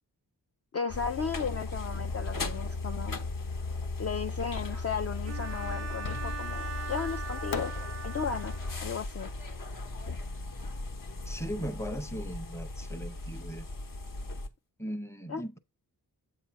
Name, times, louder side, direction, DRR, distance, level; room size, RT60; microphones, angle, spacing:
voice 1, 0.7-3.2 4.0-7.7 8.0-8.5 8.8-9.3 12.9-13.0 15.3-15.4, left 6 dB, 40° left, 0.4 m, -35 dB
sound 1, 0.9-14.5, left 2 dB, 55° left, 1.0 m, -37 dB
Bowed string instrument, 5.3-9.0, right 6 dB, 40° right, 0.4 m, -41 dB
Fireworks, 6.0-6.7 7.5-10.6, left 7 dB, 80° left, 0.6 m, -43 dB
voice 2, 11.3-13.7 14.8-15.6, equal, 5° left, 0.7 m, -38 dB
7.9 x 2.7 x 5.7 m
wide cardioid pair, 105°, 39 cm